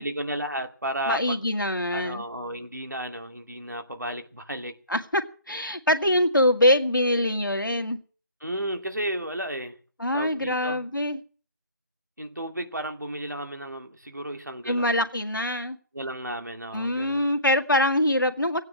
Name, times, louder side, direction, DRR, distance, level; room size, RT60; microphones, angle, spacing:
voice 1, 0.0-1.4 1.9-4.8 8.4-9.7 10.1-10.8 12.2-14.9 15.9-17.2, right 1 dB, 60° right, 2.4 m, -33 dB
voice 2, 1.1-2.2 4.9-5.2 5.5-8.0 10.0-11.2 14.6-15.8 16.7-18.6, left 1 dB, 75° left, 2.1 m, -24 dB
16.5 x 9.5 x 7.5 m
figure-of-eight pair, 175°, 11 cm